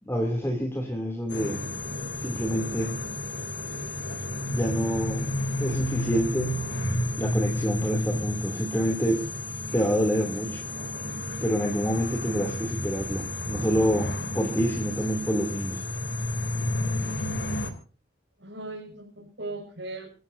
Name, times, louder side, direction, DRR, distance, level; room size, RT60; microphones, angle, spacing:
voice 1, 0.1-1.6 2.2-3.0 4.5-5.3 5.6-6.5 7.2-9.2 9.7-10.6 11.4-15.8, equal, 15° left, 1 dB, 3.0 m, -27 dB
sound 1, 1.3-17.7, left 1 dB, 70° left, 3.2 m, -31 dB
voice 2, 18.4-20.1, right 2 dB, 85° right, -3 dB, 6.6 m, -39 dB
27.0 x 14.5 x 2.7 m, 0.41 s
head